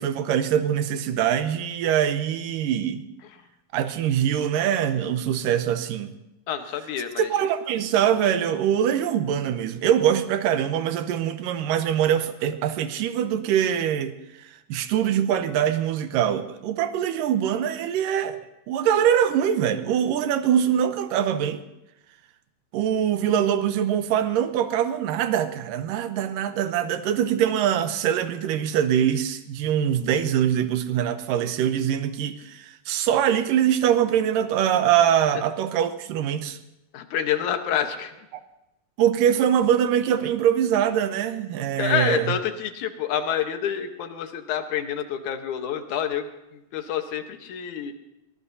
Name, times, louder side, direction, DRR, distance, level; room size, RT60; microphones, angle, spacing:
voice 1, 0.0-3.0 3.7-6.1 7.2-14.1 14.7-18.4 18.7-21.6 22.7-36.6 39.0-42.3, right 9 dB, 80° right, 10 dB, 2.4 m, -23 dB
voice 2, 6.5-7.3 36.9-38.1 41.8-47.9, left 9 dB, 65° left, 7 dB, 2.3 m, -28 dB
23.0 x 19.5 x 2.7 m, 0.93 s
omnidirectional pair, 4.0 m